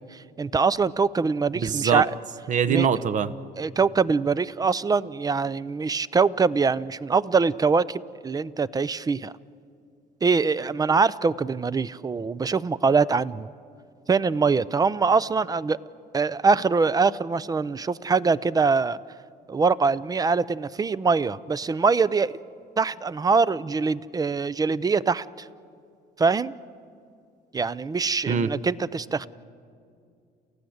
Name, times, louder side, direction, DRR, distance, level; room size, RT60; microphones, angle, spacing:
voice 1, 0.1-2.1 2.7-2.9 3.6-9.3 10.2-13.5 14.1-15.8 16.1-19.0 19.5-22.3 22.8-25.5 26.2-26.5 27.5-29.3, right 4 dB, 20° right, 18 dB, 0.5 m, -23 dB
voice 2, 1.6-2.0 2.5-3.3 28.3-28.5, right 7 dB, 45° right, 12 dB, 0.9 m, -23 dB
29.5 x 14.5 x 7.9 m, 2.4 s
cardioid pair, 110°, 17 cm